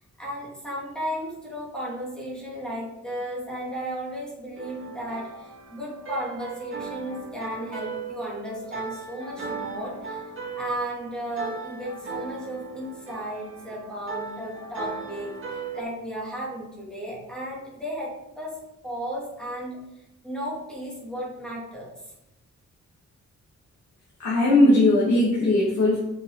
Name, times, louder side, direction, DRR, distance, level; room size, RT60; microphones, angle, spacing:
voice 1, 0.0-10.3 10.6-19.8 20.2-21.9, equal, 5° left, -5 dB, 2.9 m, -34 dB
sound 1, 4.5-15.8, right 4 dB, 45° right, 2.4 m, -37 dB
voice 2, 24.2-26.0, left 2 dB, 70° left, -7 dB, 2.4 m, -19 dB
7.9 x 6.7 x 4.1 m, 0.88 s
wide cardioid pair, 170°, 29 cm